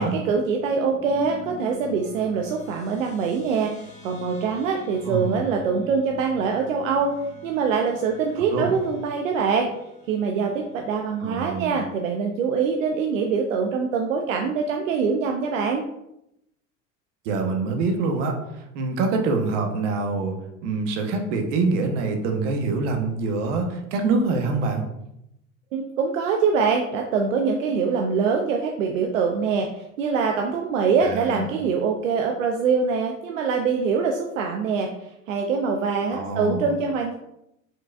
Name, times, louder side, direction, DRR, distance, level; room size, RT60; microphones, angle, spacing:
voice 1, 0.0-9.7 10.1-15.8 25.7-34.9 35.3-37.1, right 5 dB, 90° right, 2 dB, 0.6 m, -24 dB
sound 1, 0.6-11.4, left 4 dB, 20° left, 0.9 m, -45 dB
voice 2, 11.2-11.8 17.2-18.4 18.7-20.4 20.6-24.8 31.0-31.4 36.1-36.7, right 3 dB, 70° right, 3 dB, 1.0 m, -25 dB
5.1 x 3.8 x 2.4 m, 0.82 s
hypercardioid pair, 80°, 38 cm